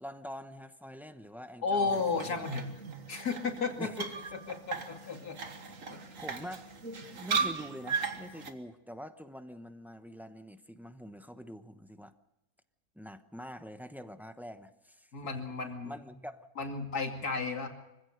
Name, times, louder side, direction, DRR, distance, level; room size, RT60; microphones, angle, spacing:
voice 1, 0.0-2.5 3.8-3.9 6.2-6.7 7.2-12.1 12.9-15.1 15.8-16.5, equal, ahead, 10 dB, 0.7 m, -45 dB
voice 2, 1.6-2.7 3.1-4.1 4.3-5.4 5.9-6.0 15.1-16.0 16.6-17.7, left 4 dB, 90° left, 4 dB, 3.0 m, -33 dB
sound 1, 1.9-8.5, right 4 dB, 60° right, 1.9 m, -37 dB
25.0 x 16.5 x 6.6 m, 0.95 s
omnidirectional pair, 1.6 m